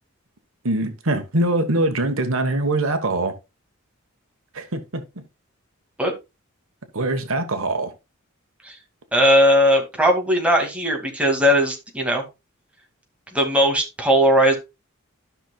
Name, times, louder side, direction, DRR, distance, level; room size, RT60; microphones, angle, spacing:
voice 1, 0.6-3.3 4.5-5.0 6.9-7.9, right 2 dB, 70° right, 1.3 m, -23 dB
voice 2, 9.1-12.2 13.3-14.6, equal, 5° right, 2.1 m, -18 dB
13.5 x 6.0 x 2.3 m
head